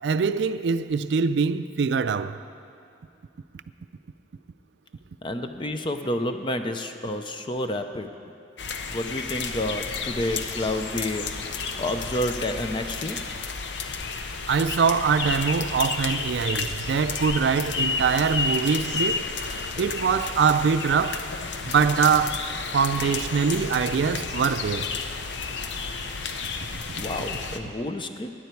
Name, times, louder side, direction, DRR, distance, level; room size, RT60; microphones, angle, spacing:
voice 1, 0.0-2.4 14.5-19.3 19.8-21.3 21.7-22.5 22.7-24.9, right 6 dB, 70° right, 0.4 m, -23 dB
voice 2, 5.2-8.1 8.9-13.2 26.9-28.3, left 1 dB, 25° left, 0.6 m, -30 dB
sound 1, 8.6-27.6, left 4 dB, 75° left, 0.7 m, -31 dB
16.5 x 10.0 x 4.6 m
head